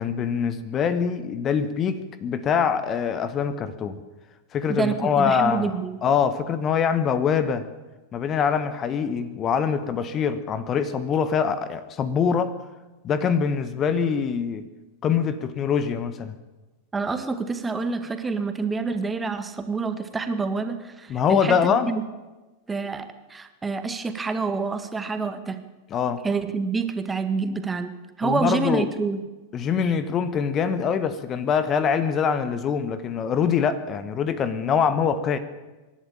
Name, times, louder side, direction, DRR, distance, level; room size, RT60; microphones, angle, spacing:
voice 1, 0.0-4.0 4.5-5.7 6.0-7.6 8.1-12.6 13.0-14.6 15.0-16.3 21.1-21.9 25.9-26.2 28.2-28.9 29.5-35.4, left 7 dB, 30° left, 13 dB, 1.3 m, -24 dB
voice 2, 4.7-6.0 16.9-22.0 22.7-25.6 26.2-29.2, right 4 dB, 15° right, 9 dB, 1.8 m, -27 dB
25.5 x 12.0 x 8.7 m, 1.2 s
figure-of-eight pair, 90°, 0 cm